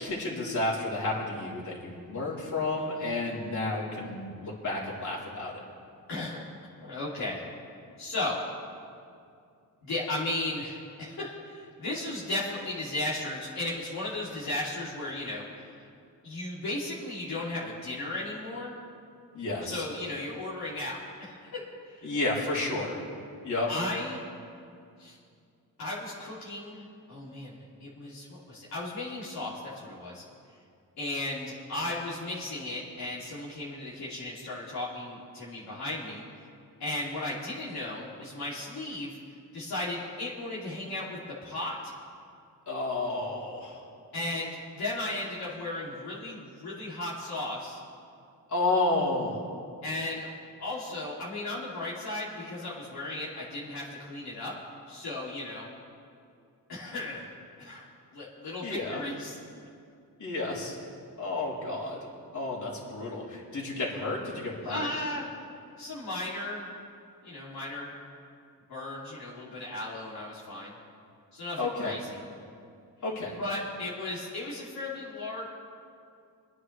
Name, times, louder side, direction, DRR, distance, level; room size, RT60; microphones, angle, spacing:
voice 1, 0.0-5.6 19.3-19.8 22.0-23.0 23.4-23.7 42.7-43.8 48.5-49.4 58.6-59.0 60.2-60.8 61.2-62.0 62.3-65.0 71.6-72.0 73.0-73.4, left 2 dB, 50° left, -5 dB, 3.5 m, -31 dB
voice 2, 6.8-7.4 8.0-8.4 9.8-15.7 16.2-18.7 19.7-22.1 23.7-24.2 25.0-25.2 25.8-30.2 31.0-36.2 36.8-39.2 39.5-41.9 44.1-47.8 49.8-50.3 50.6-54.5 54.9-55.7 56.7-57.3 57.6-57.8 58.1-59.4 64.6-65.2 65.8-66.7 67.2-67.9 68.7-70.8 71.3-72.2 73.4-75.5, left 2 dB, 75° left, -7 dB, 2.8 m, -35 dB
26.5 x 9.7 x 3.3 m, 2.4 s
cardioid pair, 95°, 37 cm